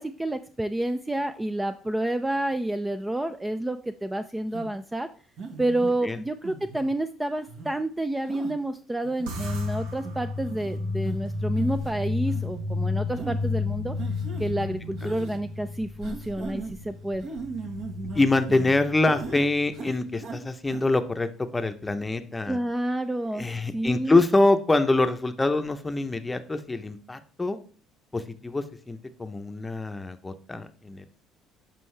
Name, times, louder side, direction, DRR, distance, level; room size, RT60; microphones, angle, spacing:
voice 1, 0.0-5.1 5.6-14.0 14.4-17.3 22.5-23.5 23.7-24.2, right 1 dB, 10° right, 9 dB, 0.4 m, -29 dB
sound 1, 4.5-4.7 5.4-5.9 6.4-6.9 7.5-7.7 8.3-8.5 9.0-9.5 10.0-10.1 10.5-10.7 11.0-11.2 11.6-11.9 12.3-12.4 13.2-13.3 14.0-14.5 15.0-15.4 16.0-16.7 17.2-18.7 19.0-19.5 19.7-20.4 20.7-20.8, right 4 dB, 55° right, 1.4 m, -38 dB
sound 2, 9.3-19.9, left 3 dB, 85° right, 1.1 m, -32 dB
voice 2, 18.2-22.6 23.3-27.6 28.1-31.1, left 2 dB, 15° left, 9 dB, 0.7 m, -25 dB
7.3 x 5.3 x 3.3 m, 0.42 s
supercardioid pair, 95°, 0 cm